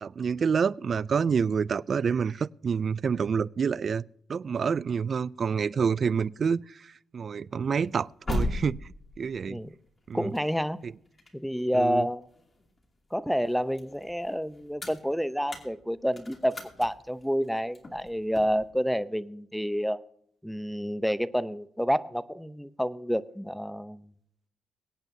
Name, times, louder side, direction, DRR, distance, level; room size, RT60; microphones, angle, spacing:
voice 1, 0.0-4.0 4.3-9.6 10.1-10.3 10.8-10.9 11.7-12.1, right 6 dB, 45° right, 0.3 m, -28 dB
sound 1, 7.8-12.8 13.3-18.7, left 1 dB, 25° left, 2.5 m, -38 dB
voice 2, 9.4-9.7 10.1-10.8 11.3-12.3 13.1-20.0 20.4-24.1, equal, ahead, 0.6 m, -29 dB
23.0 x 8.9 x 2.7 m
cardioid pair, 90°, 0 cm